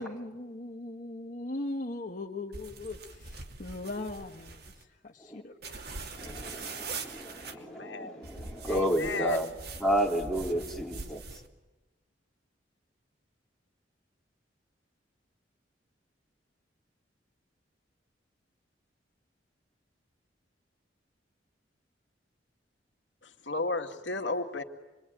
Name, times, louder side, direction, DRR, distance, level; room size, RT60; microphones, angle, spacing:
voice 1, 0.0-5.8, left 2 dB, 45° left, 1.4 m, -39 dB
sound 1, 2.5-4.8 5.6-7.5 8.2-11.5, right 3 dB, 60° right, 2.9 m, -42 dB
voice 2, 6.1-9.5 9.8-11.2, equal, ahead, 3.3 m, -31 dB
voice 3, 7.3-8.2 8.7-9.4 23.2-24.6, left 3 dB, 80° left, 2.1 m, -34 dB
27.5 x 23.0 x 9.3 m
head